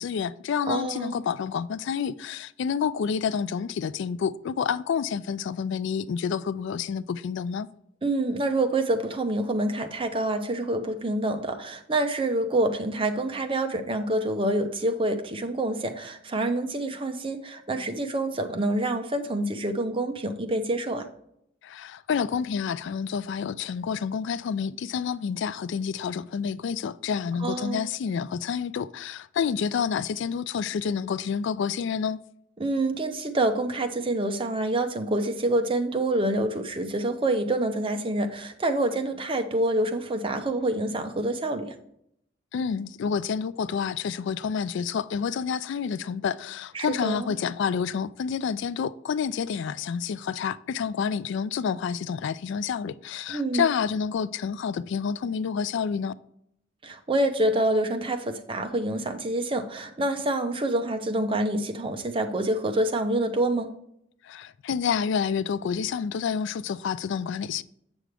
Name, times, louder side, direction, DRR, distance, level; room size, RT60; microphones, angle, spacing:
voice 1, 0.0-7.7 21.6-32.2 42.5-56.1 64.2-67.6, left 6 dB, 65° left, 0.3 m, -29 dB
voice 2, 0.7-1.2 8.0-21.1 27.4-27.8 32.6-41.7 46.7-47.3 53.3-53.7 56.8-63.7, right 1 dB, 25° right, 0.7 m, -27 dB
7.6 x 6.2 x 3.4 m
head